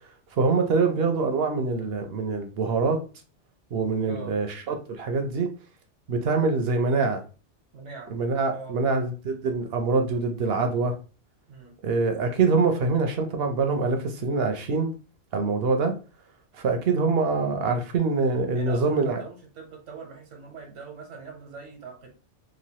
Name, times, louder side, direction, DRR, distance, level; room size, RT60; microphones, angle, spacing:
voice 1, 0.4-3.0 3.7-5.5 6.1-7.2 8.1-11.0 11.8-14.9 15.3-15.9 16.5-19.2, right 4 dB, 60° right, 5 dB, 0.7 m, -24 dB
voice 2, 7.7-8.2 8.5-8.8 11.5-11.8 18.5-22.1, right 5 dB, 85° right, 3 dB, 1.2 m, -42 dB
3.0 x 2.3 x 2.8 m, 0.34 s
omnidirectional pair, 1.2 m